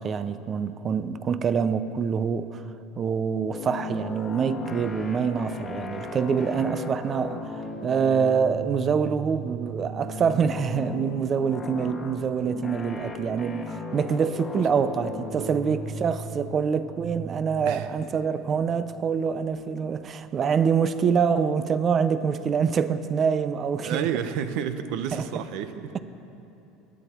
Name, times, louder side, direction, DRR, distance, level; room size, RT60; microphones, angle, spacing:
voice 1, 0.0-2.6 3.0-7.5 7.8-24.1 25.1-25.2, right 6 dB, 30° right, 13 dB, 0.5 m, -25 dB
sound 1, 3.5-20.0, left 1 dB, 20° left, 1.3 m, -37 dB
voice 2, 23.8-25.9, right 8 dB, 65° right, 10 dB, 0.8 m, -30 dB
19.5 x 12.5 x 4.5 m, 2.9 s
cardioid pair, 145°, 0 cm